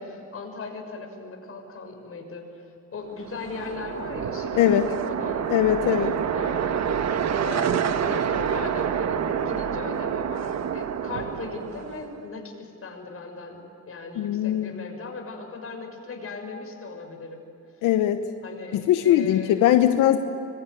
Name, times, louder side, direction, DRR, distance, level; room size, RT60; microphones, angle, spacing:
voice 1, 0.0-2.6 2.9-13.6 13.9-17.4 18.4-19.6, left 4 dB, 50° left, 3 dB, 6.6 m, -38 dB
sound 1, 3.2-12.2, right 8 dB, 60° right, 1.5 m, -27 dB
voice 2, 4.5-4.9 5.5-6.1 14.2-14.8 17.8-18.2 18.7-20.2, left 12 dB, 90° left, 8 dB, 1.0 m, -20 dB
25.5 x 23.0 x 9.7 m, 2.9 s
cardioid pair, 90°, 30 cm